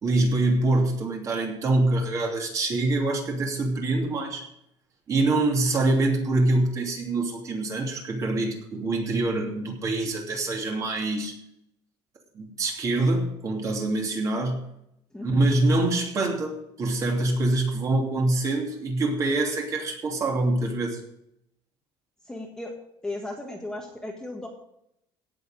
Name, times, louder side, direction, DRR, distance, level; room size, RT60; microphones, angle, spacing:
voice 1, 0.0-4.4 5.1-11.3 12.3-14.6 15.2-21.0, right 2 dB, 30° right, 1 dB, 2.9 m, -25 dB
voice 2, 15.1-15.5 22.2-22.8 23.0-24.5, left 2 dB, 5° left, 0 dB, 1.6 m, -35 dB
17.0 x 7.0 x 5.1 m, 0.77 s
cardioid pair, 165°, 11 cm